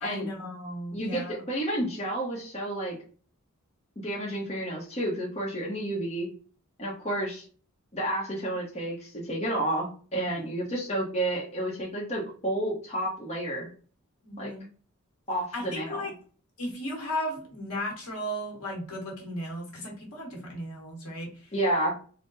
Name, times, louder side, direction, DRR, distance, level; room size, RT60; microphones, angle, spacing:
voice 1, 0.0-1.3 14.2-14.6 15.5-16.1 16.6-21.5, equal, 85° left, 0 dB, 1.4 m, -35 dB
voice 2, 0.9-3.0 4.0-6.3 6.8-7.4 7.9-13.7 14.4-14.5 15.3-16.0 21.5-22.0, right 1 dB, 30° left, -4 dB, 0.8 m, -30 dB
3.7 x 2.2 x 3.9 m, 0.41 s
head